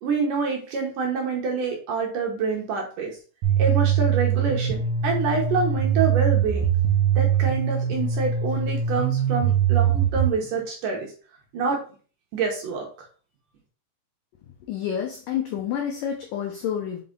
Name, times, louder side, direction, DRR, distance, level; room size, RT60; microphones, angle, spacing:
voice 1, 0.0-3.1 3.6-6.7 7.2-11.1 11.5-11.8 12.3-12.8, right 5 dB, 65° right, 0 dB, 2.3 m, -26 dB
sound 1, 3.4-10.3, right 8 dB, 80° right, 1.7 m, -22 dB
voice 2, 14.7-17.0, left 9 dB, 85° left, 2 dB, 1.9 m, -29 dB
5.8 x 5.4 x 3.8 m, 0.38 s
omnidirectional pair, 5.0 m